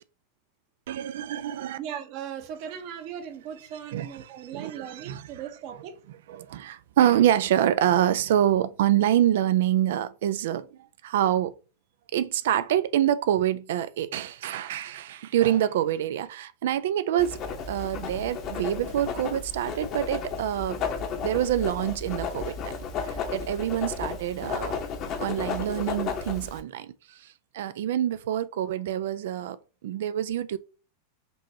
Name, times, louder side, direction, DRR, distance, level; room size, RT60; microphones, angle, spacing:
voice 1, 0.9-1.8 3.9-4.2 4.5-5.3 6.3-10.7 11.0-11.5 12.1-17.4 17.7-20.8 21.2-22.7 23.0-24.8 25.2-26.9 27.5-29.6 29.8-30.6, right 11 dB, 70° right, 0.4 m, -26 dB
voice 2, 1.7-6.0, right 8 dB, 50° right, 0.9 m, -38 dB
Writing, 17.2-26.6, left 5 dB, 45° left, 1.0 m, -33 dB
5.3 x 3.0 x 2.8 m
hypercardioid pair, 95°, 0 cm